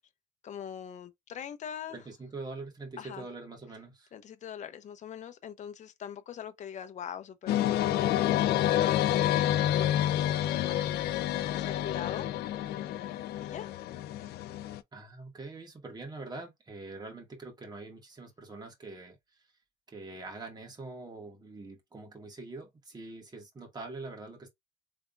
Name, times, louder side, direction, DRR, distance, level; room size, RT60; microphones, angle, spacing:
voice 1, 0.4-2.0 3.0-3.3 4.1-12.4 12.7-13.1 13.4-13.7 14.1-14.3, left 8 dB, 45° left, 0.8 m, -42 dB
voice 2, 1.9-4.1 14.9-19.2 19.9-24.5, right 3 dB, 25° right, 2.0 m, -44 dB
sound 1, 7.5-14.8, left 12 dB, 70° left, 0.4 m, -28 dB
3.5 x 3.5 x 2.5 m
cardioid pair, 110°, 17 cm